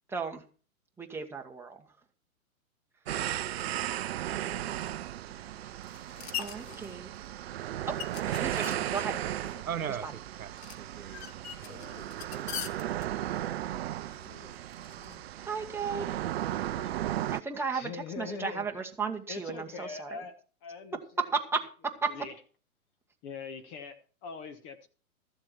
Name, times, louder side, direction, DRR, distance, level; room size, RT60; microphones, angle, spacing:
voice 1, 0.1-0.4 1.0-1.9 6.4-7.1 7.9-8.0 8.4-9.2 10.0-10.1 15.4-16.1 17.3-20.3 21.3-21.6 22.0-22.1, right 5 dB, 5° right, 1.5 m, -34 dB
sound 1, 3.1-17.4, right 12 dB, 45° right, 0.6 m, -35 dB
sound 2, 3.3-15.2, left 10 dB, 45° left, 1.1 m, -45 dB
sound 3, 4.4-5.0 6.5-7.2 8.4-10.1 11.7-12.4 14.1-14.6 15.0-15.3 16.7-17.2, left 7 dB, 65° left, 1.9 m, -54 dB
voice 2, 9.7-10.5 10.8-11.3 11.6-12.7, right 8 dB, 70° right, 1.3 m, -40 dB
voice 3, 17.7-18.6 19.3-21.0 22.1-22.3 23.2-24.9, left 5 dB, 30° left, 1.4 m, -42 dB
14.0 x 7.4 x 5.9 m
hypercardioid pair, 125°, 43 cm